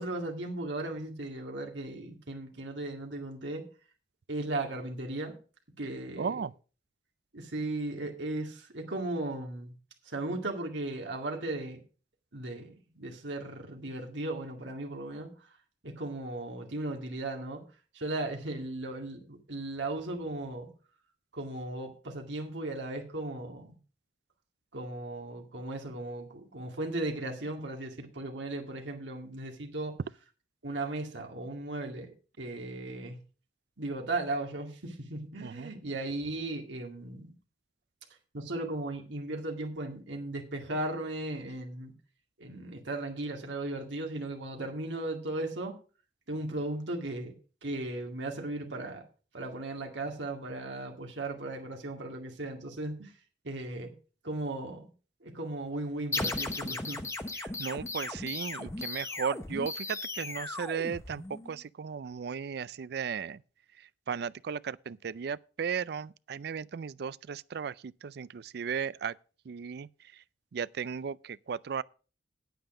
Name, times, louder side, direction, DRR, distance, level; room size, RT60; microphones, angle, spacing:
voice 1, 0.0-3.6 4.3-5.4 5.8-6.4 7.3-9.7 10.0-11.8 12.3-15.6 15.8-17.6 17.9-20.7 21.3-23.8 24.7-29.9 30.6-33.2 33.8-37.3 38.3-41.9 42.4-45.8 46.3-47.3 47.6-49.0 49.3-53.1 53.4-53.9 54.2-54.9 55.2-57.0, right 2 dB, 80° right, 2.1 m, -36 dB
voice 2, 6.2-6.5 35.4-35.7 57.4-63.4 64.1-69.1 69.5-69.9 70.5-71.8, right 6 dB, 60° right, 0.4 m, -35 dB
sound 1, 56.1-61.6, left 2 dB, 15° left, 0.8 m, -36 dB
9.1 x 9.0 x 4.9 m
head